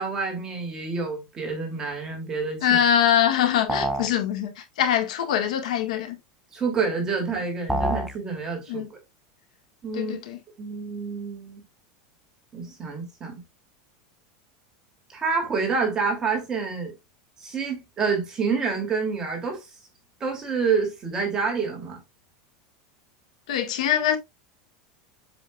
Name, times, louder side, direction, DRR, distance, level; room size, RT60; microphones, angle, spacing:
voice 1, 0.0-2.8 6.5-9.0 9.8-10.1 10.6-11.6 12.5-13.4 15.1-16.9 17.4-19.7 20.2-22.0, right 5 dB, 20° right, 3.0 m, -28 dB
voice 2, 2.6-6.2 8.7-8.9 9.9-10.4 23.5-24.2, left 9 dB, 90° left, 1.9 m, -23 dB
sound 1, 3.7-4.2 7.7-8.2, right 1 dB, ahead, 0.6 m, -26 dB
7.8 x 7.4 x 2.5 m
supercardioid pair, 165°, 4 cm